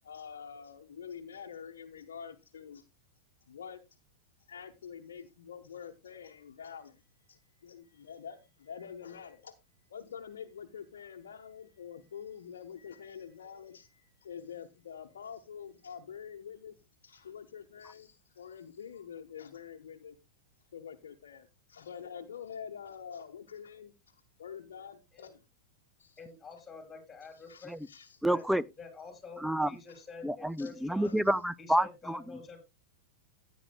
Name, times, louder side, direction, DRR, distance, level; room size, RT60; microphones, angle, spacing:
voice 1, 0.0-2.8 3.5-3.8 4.5-16.8 17.0-20.2 20.7-25.4 26.0-26.2 27.3-28.2 29.9-30.0 30.6-30.7 31.0-31.2, left 7 dB, 75° left, 1.0 m, -46 dB
voice 2, 26.2-27.7 28.3-28.4 28.8-31.2 31.6-32.6, left 4 dB, 15° left, 5.7 m, -48 dB
voice 3, 28.2-28.6 29.4-29.7 30.2-32.2, right 1 dB, ahead, 0.5 m, -29 dB
16.0 x 9.5 x 2.2 m
hypercardioid pair, 100°, 0 cm